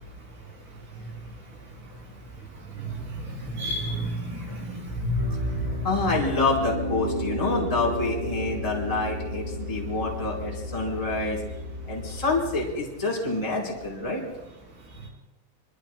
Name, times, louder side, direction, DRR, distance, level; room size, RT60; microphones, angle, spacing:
voice 1, 3.4-5.4, equal, 65° right, -3 dB, 8.4 m, -30 dB
Piano, 5.2-12.7, equal, 35° right, 1.6 m, -33 dB
voice 2, 5.8-11.4 11.9-14.2, left 3 dB, 10° left, -3 dB, 3.7 m, -27 dB
25.5 x 24.5 x 2.2 m, 1.0 s
omnidirectional pair, 5.3 m